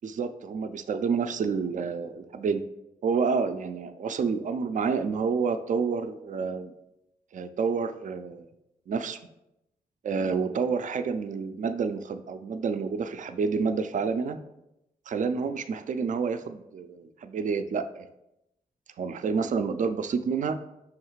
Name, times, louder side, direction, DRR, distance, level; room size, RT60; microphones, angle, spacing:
voice 1, 0.0-2.6 3.0-6.7 7.3-8.5 8.9-9.2 10.0-14.4 15.1-18.1 19.0-20.6, right 5 dB, 50° right, 10 dB, 0.4 m, -29 dB
5.6 x 2.4 x 3.1 m, 0.87 s
supercardioid pair, 45°, 16 cm